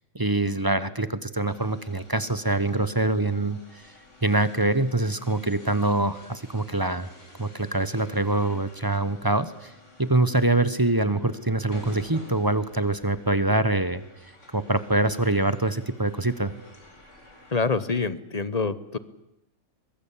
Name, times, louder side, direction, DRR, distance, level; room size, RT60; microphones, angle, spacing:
voice 1, 0.1-3.8 4.2-7.1 7.4-9.7 10.0-14.0 14.5-16.5, right 2 dB, 20° right, 14 dB, 1.0 m, -24 dB
sound 1, 1.5-17.5, left 1 dB, 65° left, 5.2 m, -50 dB
voice 2, 17.5-19.0, left 4 dB, 30° left, 15 dB, 1.1 m, -26 dB
23.5 x 22.0 x 8.5 m, 0.86 s
omnidirectional pair, 1.4 m